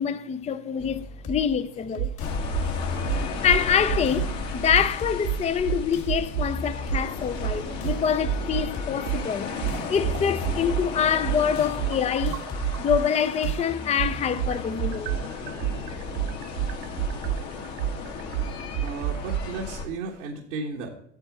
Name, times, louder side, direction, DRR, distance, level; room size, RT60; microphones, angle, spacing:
voice 1, 0.0-2.1 3.4-9.5 9.9-12.4 12.8-15.4, left 7 dB, 20° left, 0.5 m, -25 dB
sound 1, 0.8-14.8, left 3 dB, 40° left, 2.0 m, -38 dB
sound 2, 2.0-2.1 2.5-2.7 3.1-4.3 4.7-4.9 5.2-6.5 6.9-7.1 7.4-8.7 9.1-13.1 13.4-19.4, right 12 dB, 55° right, 0.5 m, -28 dB
sound 3, 2.2-19.8, left 5 dB, 55° left, 2.1 m, -35 dB
voice 2, 18.8-20.9, right 4 dB, 90° right, 1.4 m, -34 dB
9.0 x 7.1 x 4.5 m
supercardioid pair, 100°, 35 cm